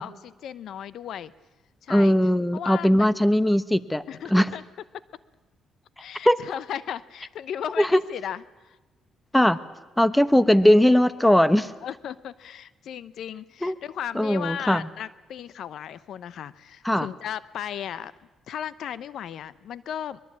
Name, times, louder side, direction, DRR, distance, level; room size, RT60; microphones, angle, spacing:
voice 1, 0.0-1.3 1.8-2.2 2.5-3.1 4.1-4.6 6.0-8.8 11.5-18.1 18.5-20.2, left 9 dB, 70° left, 16 dB, 0.8 m, -36 dB
voice 2, 1.9-4.0 4.3-4.4 6.2-6.4 7.8-8.0 9.3-9.6 10.0-11.7 13.6-13.7 14.1-14.8 16.8-17.1, equal, 5° left, 14 dB, 1.0 m, -19 dB
23.0 x 22.0 x 8.6 m, 1.1 s
cardioid pair, 90°, 0 cm